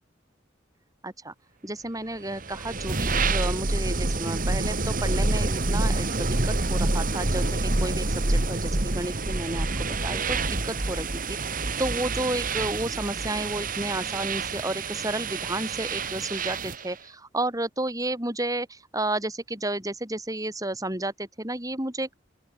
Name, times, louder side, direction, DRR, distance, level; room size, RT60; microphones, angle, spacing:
voice 1, 1.0-1.3 1.6-9.7 10.0-22.1, right 1 dB, 20° right, 5.6 m, -32 dB
sound 1, 2.3-16.9, right 2 dB, 50° right, 2.0 m, -27 dB
open air
head